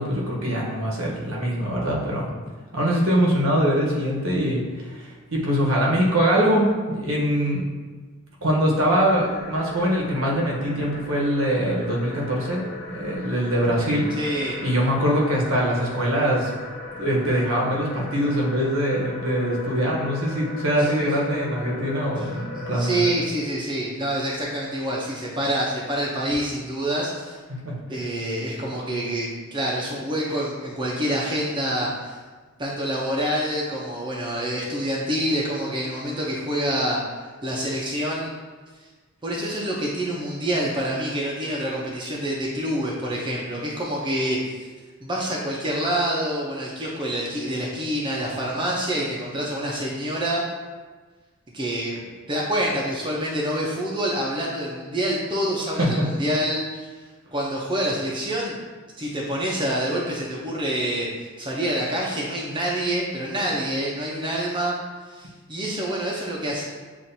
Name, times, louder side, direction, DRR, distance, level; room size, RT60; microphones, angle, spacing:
voice 1, 0.0-2.3 2.7-4.6 4.9-7.6 8.4-14.1 14.6-16.5 17.0-23.0 27.5-27.8 55.8-56.1, equal, 65° right, -3 dB, 1.0 m, -23 dB
sound 1, 8.9-23.1, left 2 dB, 55° left, 0.8 m, -38 dB
voice 2, 14.1-14.6 20.8-21.1 22.2-22.3 22.5-27.4 27.9-32.2 32.6-37.0 37.4-38.3 39.2-44.5 45.0-50.4 51.5-56.9 57.3-58.6 59.0-64.8 65.1-66.6, right 1 dB, 20° right, -4 dB, 0.6 m, -27 dB
7.3 x 2.5 x 2.7 m, 1.4 s
head